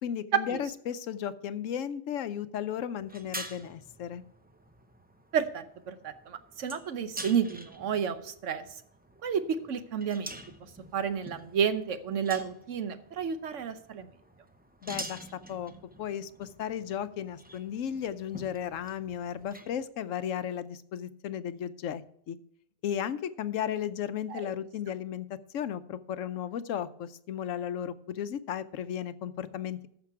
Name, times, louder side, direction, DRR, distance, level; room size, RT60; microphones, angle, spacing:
voice 1, 0.0-4.2 14.8-15.2 15.5-15.7 16.0-22.4 22.8-29.9, left 9 dB, 90° left, 13 dB, 1.0 m, -35 dB
sound 1, 3.0-19.8, right 1 dB, 10° right, 0.5 m, -47 dB
voice 2, 5.3-8.6 9.2-10.3 10.9-14.1 24.3-24.4, right 7 dB, 75° right, 10 dB, 1.2 m, -31 dB
14.0 x 5.8 x 4.7 m, 0.69 s
omnidirectional pair, 1.3 m